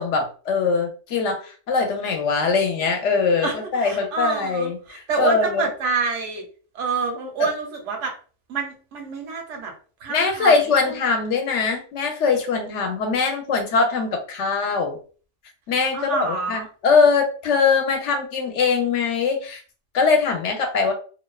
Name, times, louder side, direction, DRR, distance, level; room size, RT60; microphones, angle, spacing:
voice 1, 0.0-5.7 10.1-15.0 15.7-19.6 19.9-20.9, left 5 dB, 70° left, 4 dB, 0.9 m, -22 dB
voice 2, 3.4-6.4 6.7-8.1 8.5-9.7 10.0-10.9 15.9-16.7, right 4 dB, 75° right, 3 dB, 1.0 m, -27 dB
2.6 x 2.1 x 2.2 m, 0.39 s
omnidirectional pair, 1.3 m